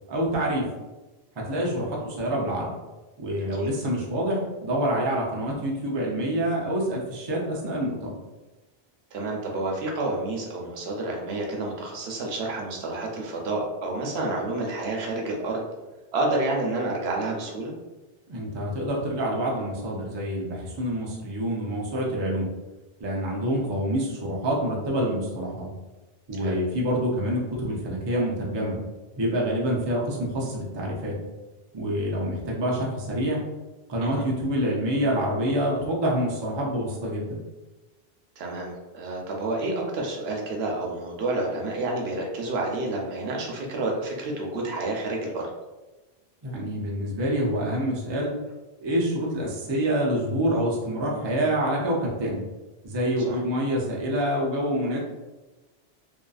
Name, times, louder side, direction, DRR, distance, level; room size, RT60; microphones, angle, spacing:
voice 1, 0.1-0.7 1.4-2.7 3.2-8.2 18.3-22.5 23.0-25.7 26.3-28.8 29.2-31.2 31.7-33.4 33.9-37.4 46.4-48.3 48.8-52.4 52.8-55.0, equal, 35° right, -3 dB, 0.4 m, -27 dB
voice 2, 3.4-3.7 9.1-15.6 16.1-17.7 26.4-26.6 34.0-34.2 38.4-45.5 53.2-53.4, right 2 dB, 80° right, -1 dB, 0.9 m, -29 dB
2.7 x 2.5 x 2.3 m, 1.1 s
omnidirectional pair, 1.0 m